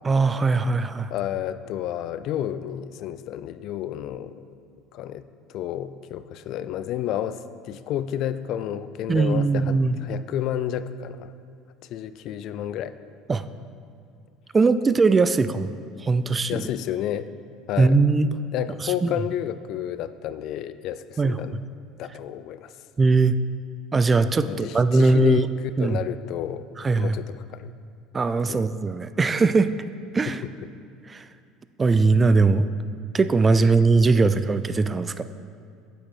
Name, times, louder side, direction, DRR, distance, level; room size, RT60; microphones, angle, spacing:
voice 1, 0.0-1.1 9.1-10.0 13.3-13.4 14.5-15.7 16.0-16.6 17.8-18.3 18.8-19.1 21.2-21.4 23.0-23.3 23.9-25.5 25.8-26.0 26.8-27.2 28.1-29.7 30.1-30.4 31.1-31.2 31.8-32.6 33.1-35.2, right 3 dB, 20° right, 13 dB, 0.3 m, -20 dB
voice 2, 1.1-4.4 4.9-5.3 5.5-11.3 11.8-13.0 16.5-17.3 17.7-18.0 18.5-21.5 22.0-22.7 24.4-25.5 25.8-26.7 26.9-27.7 28.5-28.7 30.3-30.5, left 11 dB, 60° left, 13 dB, 0.4 m, -31 dB
8.7 x 7.8 x 4.4 m, 2.4 s
supercardioid pair, 105°, 0 cm